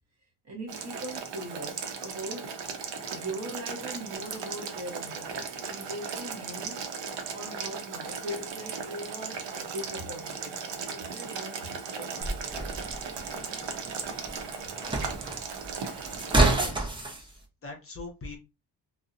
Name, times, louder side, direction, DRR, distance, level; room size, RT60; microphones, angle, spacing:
voice 1, 0.4-2.5 3.1-6.9 7.3-12.8 15.8-16.2, right 1 dB, 40° right, 0.8 m, -41 dB
Boiling, 0.7-16.6, right 6 dB, 80° right, 0.7 m, -37 dB
sound 1, 12.2-17.2, right 2 dB, 10° right, 0.5 m, -29 dB
voice 2, 16.5-18.4, left 3 dB, 30° left, 0.6 m, -43 dB
2.7 x 2.1 x 2.4 m
cardioid pair, 105°, 42 cm